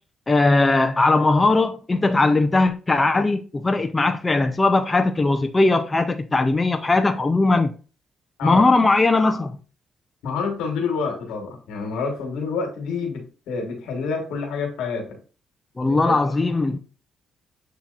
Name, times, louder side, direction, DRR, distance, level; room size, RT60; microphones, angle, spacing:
voice 1, 0.3-7.7 8.4-9.6 15.8-16.8, left 3 dB, 20° left, 0.4 m, -19 dB
voice 2, 10.2-15.2 15.8-16.1, left 5 dB, 90° left, 1.4 m, -28 dB
7.2 x 2.8 x 2.5 m
cardioid pair, 90°, 0 cm